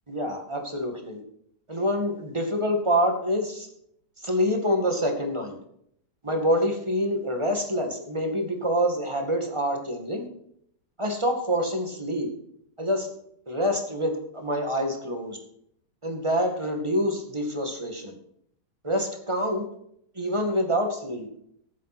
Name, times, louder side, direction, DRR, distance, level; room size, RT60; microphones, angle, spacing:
voice 1, 0.1-1.2 1.7-3.7 4.2-5.6 6.2-10.3 11.0-12.3 12.8-13.1 13.5-15.4 16.0-18.1 18.8-19.7 20.2-21.3, equal, 15° right, 3 dB, 2.1 m, -26 dB
14.5 x 7.4 x 6.1 m, 0.71 s
omnidirectional pair, 1.8 m